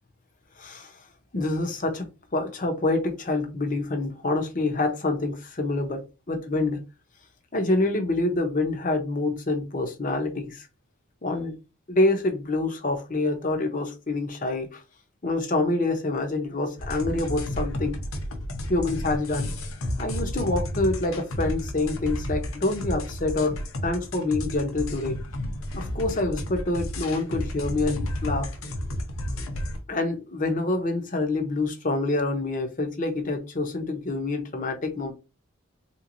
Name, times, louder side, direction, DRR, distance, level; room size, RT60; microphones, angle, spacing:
voice 1, 0.6-0.9 1.3-2.1 2.3-6.8 7.5-10.7 11.2-11.5 11.9-14.8 15.2-18.0 18.7-19.5 20.0-23.6 23.8-25.2 25.7-28.5 29.9-35.1, left 2 dB, 40° left, 0.7 m, -26 dB
sound 1, 16.8-29.8, left 1 dB, 75° left, 0.7 m, -32 dB
3.7 x 2.9 x 2.5 m
head